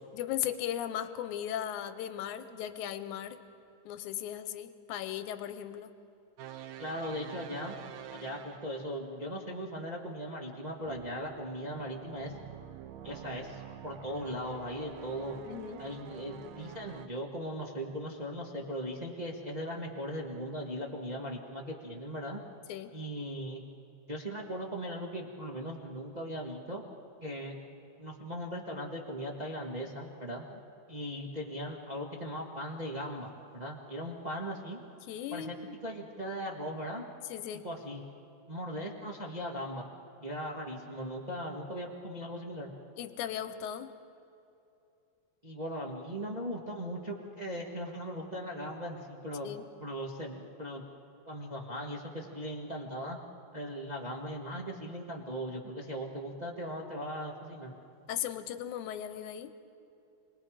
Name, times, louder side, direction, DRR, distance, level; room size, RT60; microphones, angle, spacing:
voice 1, 0.1-3.4 3.9-5.9 15.5-15.8 22.7-22.9 30.5-30.6 35.1-35.8 37.3-37.7 43.0-43.9 49.4-49.7 58.1-59.5, left 10 dB, 75° left, 10 dB, 2.2 m, -37 dB
sound 1, 6.4-9.0 10.8-17.1, right 10 dB, 75° right, 1.8 m, -48 dB
voice 2, 6.8-7.8 8.1-12.4 13.0-15.4 15.8-22.4 22.9-23.6 24.1-26.8 27.2-27.6 28.0-30.5 30.9-34.8 35.3-35.6 35.8-37.1 37.6-38.0 38.5-39.8 40.2-42.7 45.4-49.5 49.8-50.8 51.2-53.2 53.5-57.7, equal, 55° right, -1 dB, 0.4 m, -38 dB
29.0 x 20.5 x 5.0 m, 2.8 s
omnidirectional pair, 3.6 m